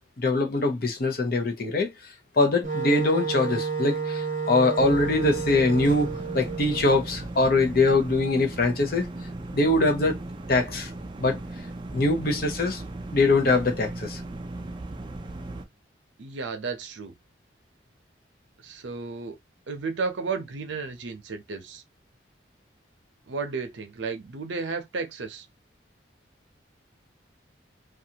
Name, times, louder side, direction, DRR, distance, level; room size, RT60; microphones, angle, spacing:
voice 1, 0.2-1.9 2.4-9.1 9.5-10.2 10.5-10.9 11.2-11.4 11.9-12.8 13.1-14.2, left 2 dB, 50° left, 0.7 m, -23 dB
Wind instrument woodwind instrument, 2.6-7.3, right 5 dB, 40° right, 0.7 m, -31 dB
sound 1, 4.8-15.7, right 2 dB, 25° right, 0.3 m, -37 dB
voice 2, 16.2-17.1 18.6-19.4 19.7-21.8 23.3-25.5, right 4 dB, 75° right, 0.6 m, -33 dB
2.5 x 2.3 x 2.7 m
head